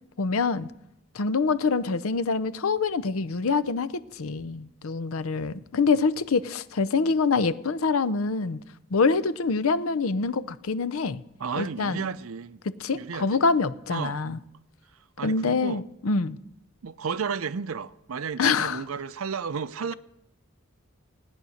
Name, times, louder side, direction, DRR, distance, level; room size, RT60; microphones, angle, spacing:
voice 1, 0.2-0.7 1.1-8.6 8.9-11.2 11.6-12.0 12.8-14.4 15.2-16.4 18.4-18.8, left 4 dB, 85° left, 0.6 m, -25 dB
voice 2, 11.4-12.6 12.9-13.4 13.9-14.2 15.2-15.8 16.8-19.9, right 6 dB, 85° right, 0.6 m, -32 dB
17.5 x 9.5 x 6.5 m
head